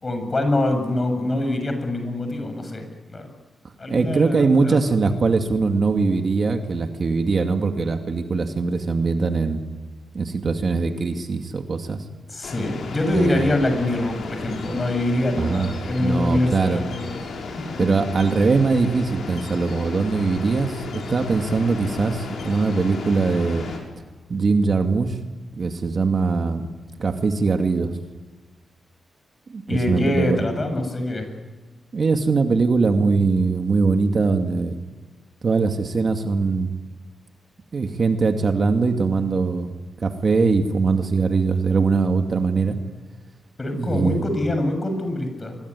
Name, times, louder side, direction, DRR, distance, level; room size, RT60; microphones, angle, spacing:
voice 1, 0.0-3.3 3.8-4.8 12.3-17.2 17.5-17.9 29.7-31.3 43.6-45.6, left 1 dB, 30° left, 6 dB, 7.4 m, -24 dB
voice 2, 3.9-9.6 10.1-12.0 13.1-13.5 15.4-15.7 16.0-16.8 17.8-23.7 24.3-25.2 25.6-26.7 27.0-27.9 29.5-30.4 31.9-34.8 35.4-36.7 37.7-39.7 40.0-42.8 43.7-44.2, right 4 dB, 45° right, 5 dB, 2.2 m, -21 dB
sound 1, 12.4-23.8, left 3 dB, 75° left, 7.0 m, -34 dB
25.0 x 23.0 x 9.8 m, 1.3 s
cardioid pair, 105°, 0 cm